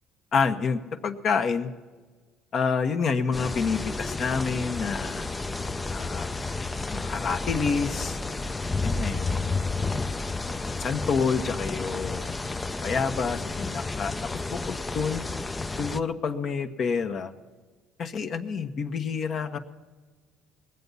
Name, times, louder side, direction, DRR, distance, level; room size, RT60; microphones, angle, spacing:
voice 1, 0.3-1.7 2.5-5.3 5.9-6.3 6.9-8.2 8.8-9.7 10.8-12.3 12.8-14.1 14.5-15.2 15.8-17.3 18.0-19.6, left 5 dB, 45° left, 8 dB, 1.1 m, -28 dB
sound 1, 3.3-16.0, left 3 dB, 15° left, 0.5 m, -31 dB
21.0 x 8.2 x 5.5 m, 1.4 s
cardioid pair, 105°, 0 cm